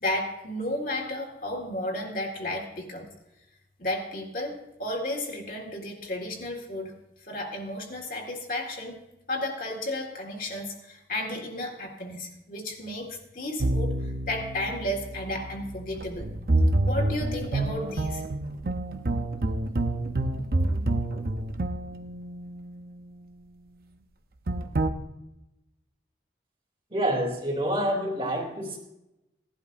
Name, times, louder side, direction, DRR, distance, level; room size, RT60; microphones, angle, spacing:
voice 1, 0.0-3.1 3.8-6.9 7.2-9.0 9.3-16.3 16.9-18.2, left 1 dB, 50° left, 0 dB, 1.8 m, -33 dB
sound 1, 13.6-23.0 24.5-24.9, right 2 dB, 55° right, 0.7 m, -28 dB
voice 2, 26.9-28.8, right 1 dB, 30° right, -1 dB, 3.1 m, -27 dB
17.5 x 11.5 x 2.6 m, 0.92 s
head